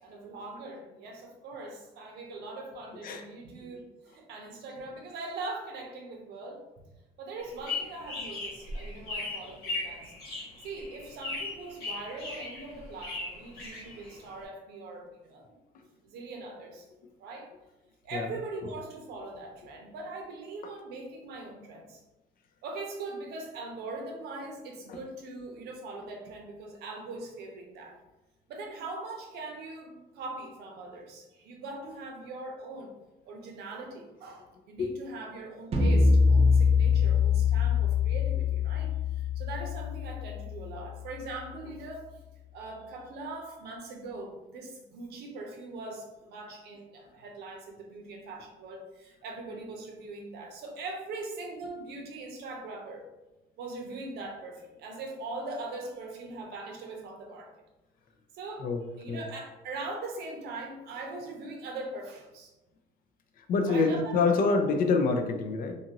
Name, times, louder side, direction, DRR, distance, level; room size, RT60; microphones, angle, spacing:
voice 1, 0.0-6.6 7.2-10.1 10.6-15.4 16.0-16.9 17.2-17.5 18.0-22.0 22.6-28.0 28.5-32.9 33.3-42.1 42.5-53.1 53.6-57.5 58.3-58.7 59.0-62.5 63.6-64.6, right 2 dB, 75° right, 1 dB, 0.7 m, -41 dB
sound 1, 7.4-14.4, left 3 dB, 75° left, 1.3 m, -38 dB
sound 2, 35.7-41.1, left 5 dB, 35° right, 0.5 m, -24 dB
voice 2, 63.5-65.7, left 4 dB, 55° left, 5 dB, 0.4 m, -26 dB
2.6 x 2.5 x 2.8 m, 1.0 s
cardioid pair, 110°, 17 cm